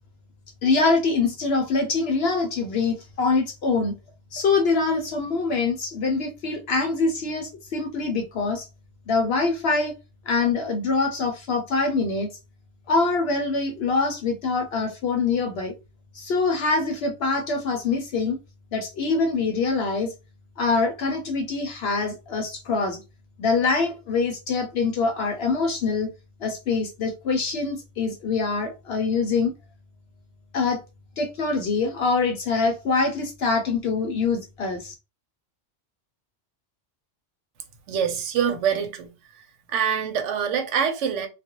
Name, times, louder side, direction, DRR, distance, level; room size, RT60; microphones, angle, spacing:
voice 1, 0.6-4.0 4.3-8.7 9.1-9.9 10.3-12.3 12.9-15.7 16.1-18.4 18.7-20.1 20.6-23.0 23.4-26.1 26.4-29.5 30.5-30.8 31.2-34.9, left 4 dB, 65° left, 0.8 m, -24 dB
voice 2, 37.9-39.1 39.7-41.3, right 7 dB, 85° right, 1.0 m, -25 dB
2.3 x 2.2 x 2.9 m
omnidirectional pair, 1.2 m